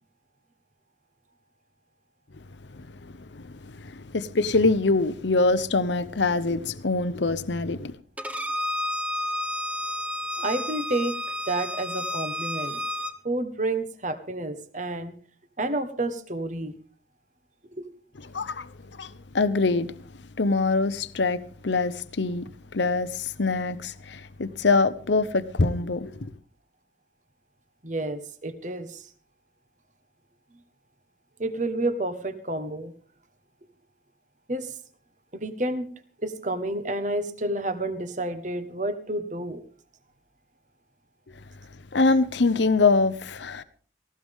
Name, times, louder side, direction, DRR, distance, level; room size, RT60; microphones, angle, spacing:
voice 1, 2.7-8.0 18.3-19.9 20.4-26.3 41.9-43.6, left 3 dB, 75° left, 0.9 m, -24 dB
Bowed string instrument, 8.2-13.1, left 1 dB, 10° right, 1.0 m, -31 dB
voice 2, 10.4-11.2 11.5-12.8 13.2-15.1 15.6-16.7 17.8-17.9 27.8-29.1 31.4-32.9 34.5-34.8 35.3-35.9 36.2-39.6, right 2 dB, 40° right, 1.4 m, -30 dB
18.5 x 16.0 x 3.7 m
head